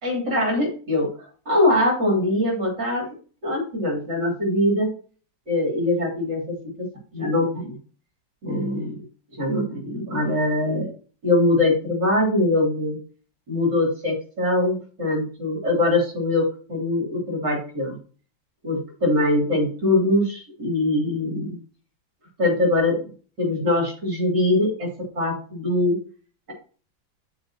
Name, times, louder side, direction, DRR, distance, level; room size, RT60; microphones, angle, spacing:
voice 1, 0.0-3.1 3.4-4.9 5.5-6.7 7.1-7.8 8.4-9.0 9.4-10.9 11.2-13.0 13.5-18.0 18.6-21.6 22.4-23.1 23.4-24.9 25.2-26.0, left 1 dB, 65° right, -3 dB, 3.8 m, -22 dB
11.5 x 4.9 x 2.9 m, 0.40 s
omnidirectional pair, 2.1 m